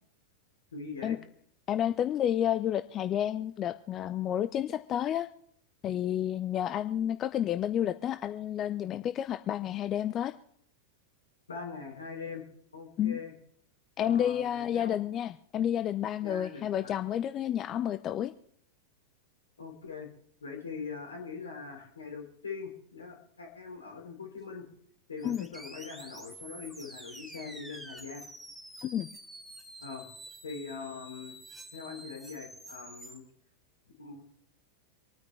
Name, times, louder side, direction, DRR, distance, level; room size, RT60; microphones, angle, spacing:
voice 1, 0.7-1.2 11.5-12.4 12.7-13.3 14.0-15.0 16.2-16.9 19.6-20.1 20.4-24.6 25.1-28.3 29.8-30.1 30.4-31.3 31.7-33.2 34.0-34.2, left 5 dB, 70° left, 2 dB, 3.2 m, -42 dB
voice 2, 1.7-5.3 5.8-10.3 13.0-13.2 14.0-18.3 25.2-25.5 28.8-29.1, left 10 dB, 30° left, 11 dB, 0.5 m, -30 dB
sound 1, 25.2-33.2, right 1 dB, 5° right, 1.7 m, -48 dB
26.5 x 9.4 x 3.2 m, 0.68 s
figure-of-eight pair, 90°, 0 cm